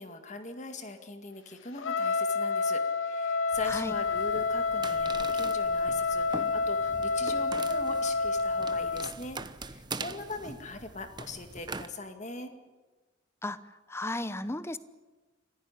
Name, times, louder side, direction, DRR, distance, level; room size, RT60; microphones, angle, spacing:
voice 1, 0.0-12.5, left 3 dB, 35° left, 7 dB, 2.1 m, -41 dB
Trumpet, 1.8-9.1, left 4 dB, 75° left, 1.0 m, -29 dB
sound 1, 3.5-11.9, right 3 dB, 20° right, 0.9 m, -43 dB
voice 2, 13.9-14.8, left 2 dB, 15° left, 14 dB, 0.9 m, -34 dB
25.5 x 15.5 x 9.9 m, 1.3 s
head